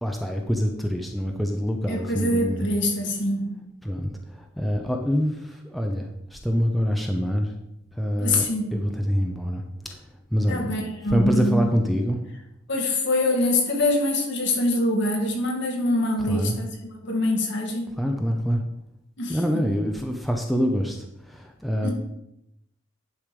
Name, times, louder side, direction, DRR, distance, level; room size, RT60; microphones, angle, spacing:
voice 1, 0.0-2.7 3.8-7.5 7.9-10.0 10.3-10.7 11.1-12.2 16.3-16.6 18.0-18.6 19.3-21.9, equal, ahead, 2 dB, 0.7 m, -26 dB
voice 2, 1.9-3.6 8.2-8.8 10.5-11.6 12.7-16.7 17.0-18.0 19.2-19.7 21.8-21.9, left 1 dB, 60° left, 0 dB, 2.2 m, -24 dB
10.5 x 5.0 x 5.2 m, 0.84 s
head